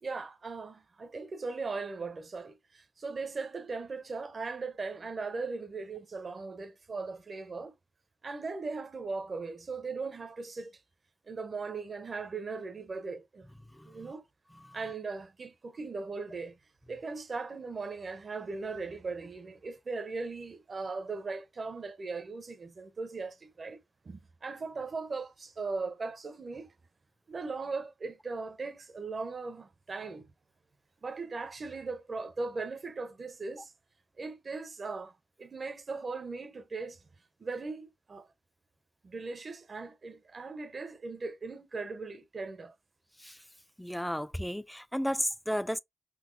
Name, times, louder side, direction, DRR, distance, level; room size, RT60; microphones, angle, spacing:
voice 1, 0.0-7.7 8.2-10.7 11.3-13.5 13.9-14.2 14.7-16.6 16.9-23.8 24.0-26.7 27.3-30.3 31.0-33.7 34.2-37.0 37.4-38.3 39.0-42.7, right 4 dB, 50° right, 0.6 m, -38 dB
voice 2, 43.8-45.8, equal, 5° left, 0.3 m, -33 dB
3.9 x 2.7 x 2.6 m
cardioid pair, 60°, 0 cm